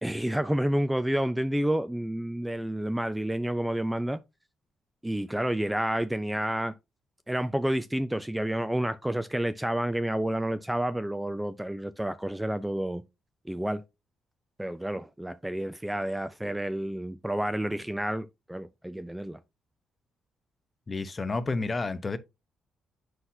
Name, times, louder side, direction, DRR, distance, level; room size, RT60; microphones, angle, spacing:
voice 1, 0.0-4.2 5.0-6.7 7.3-13.0 13.5-13.8 14.6-19.4, right 1 dB, 5° right, 0.5 m, -29 dB
voice 2, 20.9-22.2, left 3 dB, 30° left, 0.9 m, -30 dB
7.8 x 5.8 x 2.8 m
cardioid pair, 90°, 0 cm